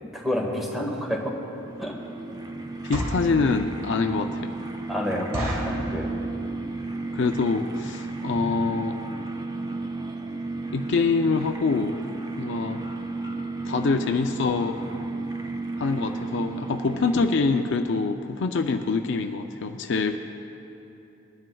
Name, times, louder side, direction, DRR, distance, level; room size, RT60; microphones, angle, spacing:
voice 1, 0.1-1.3 1.8-1.9 4.9-6.1, left 1 dB, ahead, -2 dB, 1.6 m, -28 dB
sound 1, 1.2-1.3 1.8-2.0 2.7-3.3 3.9-4.0 4.3-4.4 4.7-4.8 5.3-5.8 6.4-6.7 7.0-7.1 7.3-7.6 8.1-8.2 8.4-8.6 9.0-9.1 9.3-9.4, equal, 70° right, 2.3 m, -31 dB
sound 2, 1.3-18.0, right 3 dB, 20° right, 0.5 m, -33 dB
voice 2, 2.8-4.5 7.1-9.0 10.7-12.0 12.4-12.8 13.3-13.4 13.7-14.8 15.8-20.2, left 4 dB, 60° left, 6 dB, 0.4 m, -25 dB
21.0 x 11.0 x 2.3 m, 3.0 s
head